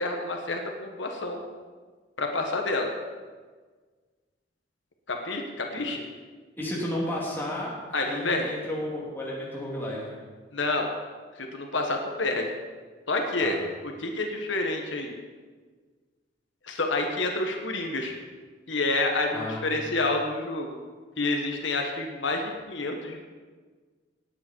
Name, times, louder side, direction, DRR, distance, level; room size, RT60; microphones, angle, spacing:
voice 1, 0.0-1.4 2.2-2.9 5.1-6.0 7.9-8.4 10.5-10.9 11.4-12.4 13.1-13.5 14.0-15.1 16.6-18.1 18.7-20.8 21.2-23.2, left 2 dB, 85° left, 2 dB, 1.5 m, -28 dB
voice 2, 6.6-10.2 13.4-13.6 19.3-19.8, left 1 dB, 10° left, -5 dB, 3.2 m, -33 dB
18.5 x 8.9 x 4.7 m, 1.5 s
head